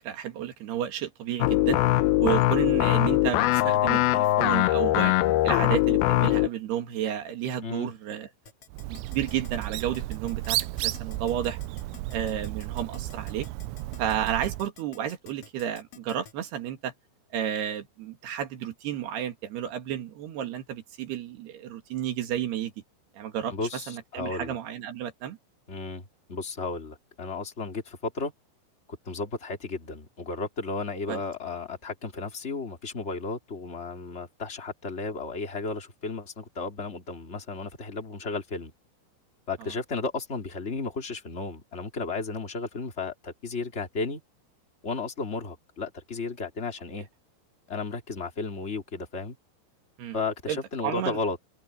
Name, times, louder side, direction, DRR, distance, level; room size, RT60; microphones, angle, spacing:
voice 1, 0.0-1.8 2.2-5.2 5.4-8.3 8.9-11.6 12.1-13.5 14.0-16.9 17.3-22.7 23.1-25.4 31.1-31.2 39.6-39.7 50.0-50.2 50.5-51.2, right 10 dB, 65° right, 3.7 m, -32 dB
sound 1, 1.4-6.5, left 16 dB, 80° left, 2.2 m, -22 dB
Keyboard (musical), 8.5-16.3, left 7 dB, 40° left, 2.7 m, -50 dB
Bird, 8.7-14.7, right 17 dB, 90° right, 3.1 m, -33 dB
voice 2, 23.5-24.6 25.7-26.0 26.3-28.3 29.0-38.7 39.5-44.2 44.8-47.1 47.7-49.3 50.1-51.4, left 3 dB, 15° left, 2.8 m, -34 dB
omnidirectional pair, 5.3 m